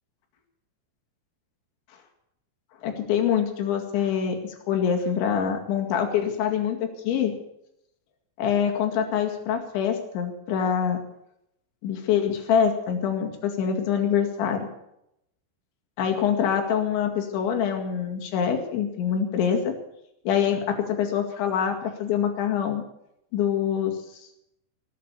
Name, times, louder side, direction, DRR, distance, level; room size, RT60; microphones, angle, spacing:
voice 1, 2.8-7.3 8.4-11.0 11.8-14.7 16.0-19.7 20.3-22.8 23.3-24.0, left 8 dB, 85° left, 3 dB, 4.5 m, -25 dB
19.0 x 8.5 x 8.3 m, 0.80 s
omnidirectional pair, 5.1 m